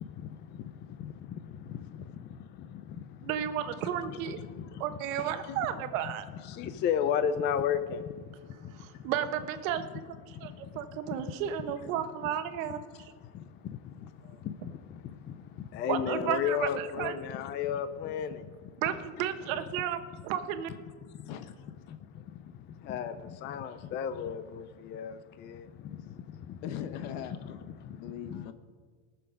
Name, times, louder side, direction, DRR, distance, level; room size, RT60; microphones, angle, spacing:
voice 1, 3.2-4.4 4.8-6.3 8.7-9.8 10.3-13.1 14.3-14.4 15.9-17.1 18.8-20.7, right 10 dB, 70° right, 9 dB, 1.2 m, -33 dB
voice 2, 5.2-5.6 19.2-19.3 21.3-21.5 26.6-27.6 28.0-28.5, left 9 dB, 65° left, 9 dB, 1.1 m, -40 dB
voice 3, 6.5-8.0 14.5-14.6 15.7-18.4 22.9-23.1 23.4-25.1 25.4-25.6 28.3-28.4, left 8 dB, 25° left, 11 dB, 0.4 m, -31 dB
19.5 x 7.0 x 5.1 m, 1.5 s
supercardioid pair, 140°, 41 cm